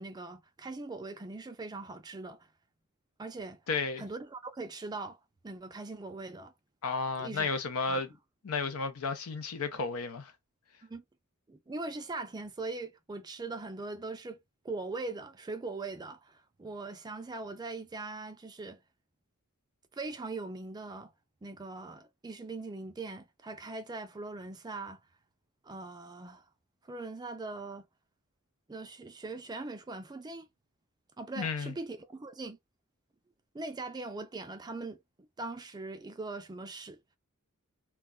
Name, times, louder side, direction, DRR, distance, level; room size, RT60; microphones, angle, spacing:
voice 1, 0.0-2.5 3.2-3.6 4.0-5.2 5.4-6.5 7.2-7.5 7.9-8.0 10.8-11.0 11.5-14.4 14.6-18.8 19.9-21.1 21.4-25.0 25.6-26.4 26.8-27.9 28.7-30.5 31.2-32.6 33.5-35.0 35.4-37.0, right 3 dB, 20° right, 0.4 m, -41 dB
voice 2, 3.7-4.0 6.8-8.1 8.4-10.3 31.4-31.7, left 4 dB, 75° left, 0.6 m, -33 dB
2.3 x 2.2 x 3.6 m
head